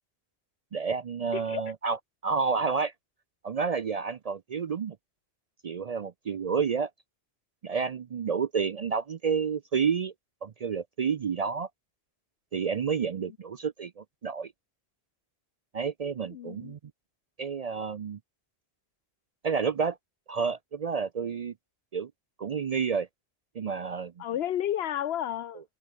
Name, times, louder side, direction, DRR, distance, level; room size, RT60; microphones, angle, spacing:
voice 1, 0.7-2.9 3.4-5.0 5.6-6.9 7.6-10.1 10.4-11.7 12.5-14.5 15.7-16.8 17.4-18.2 19.4-20.0 20.3-21.5 21.9-22.1 22.4-23.1 23.5-24.1, right 5 dB, 50° right, 0.5 m, -30 dB
voice 2, 16.3-16.8 24.2-25.6, left 11 dB, 75° left, 0.9 m, -31 dB
omnidirectional pair, 1.1 m